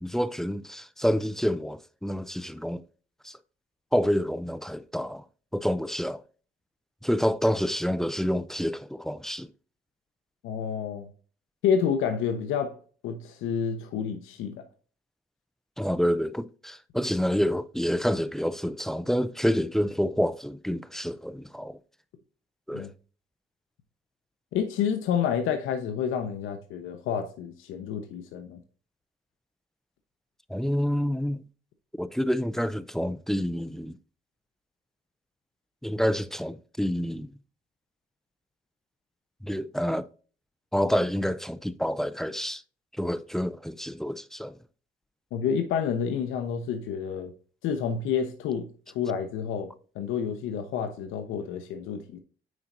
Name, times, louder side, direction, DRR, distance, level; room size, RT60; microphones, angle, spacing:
voice 1, 0.0-2.8 3.2-3.4 3.9-5.2 5.5-6.2 7.0-9.5 15.8-21.8 22.7-22.9 30.5-31.4 32.0-34.0 35.8-37.3 39.4-40.1 40.7-42.6 43.0-44.5, equal, ahead, 0.4 m, -28 dB
voice 2, 10.4-11.1 11.6-12.8 13.0-14.6 22.7-22.9 24.5-28.6 45.3-47.3 47.6-52.2, left 7 dB, 90° left, 0.9 m, -29 dB
9.4 x 4.2 x 2.6 m
cardioid pair, 90°, 20 cm